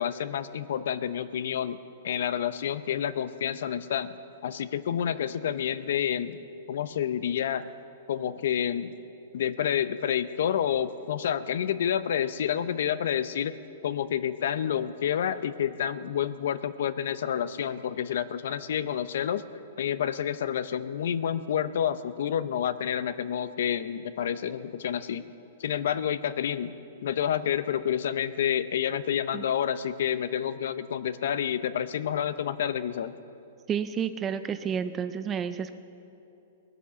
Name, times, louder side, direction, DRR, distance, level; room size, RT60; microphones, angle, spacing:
voice 1, 0.0-1.8 2.0-6.4 6.7-7.6 8.1-8.9 9.3-13.5 13.8-19.4 19.8-25.2 25.6-26.7 27.0-33.1, left 9 dB, 60° left, 14 dB, 0.6 m, -29 dB
voice 2, 33.7-35.7, right 7 dB, 15° right, 11 dB, 0.4 m, -30 dB
21.0 x 9.5 x 7.0 m, 2.8 s
hypercardioid pair, 175°, 0 cm